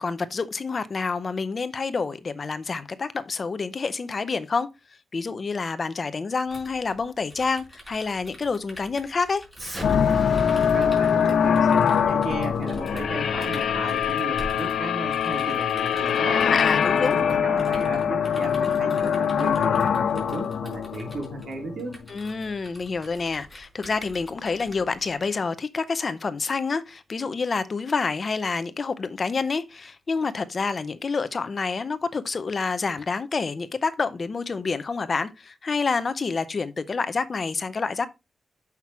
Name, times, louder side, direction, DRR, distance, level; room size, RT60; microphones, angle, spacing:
voice 1, 0.0-4.7 5.1-9.4 16.4-17.2 22.1-38.1, left 4 dB, 35° left, 0.6 m, -28 dB
sound 1, 6.5-25.2, equal, ahead, 4.6 m, -49 dB
Explosion, 9.5-14.7, equal, 25° right, 5.9 m, -39 dB
sound 2, 9.8-21.9, left 7 dB, 85° left, 0.7 m, -23 dB
voice 2, 10.5-16.5 16.9-22.0, right 2 dB, 65° right, 3.2 m, -35 dB
7.3 x 5.9 x 4.6 m
wide cardioid pair, 160°, 0 cm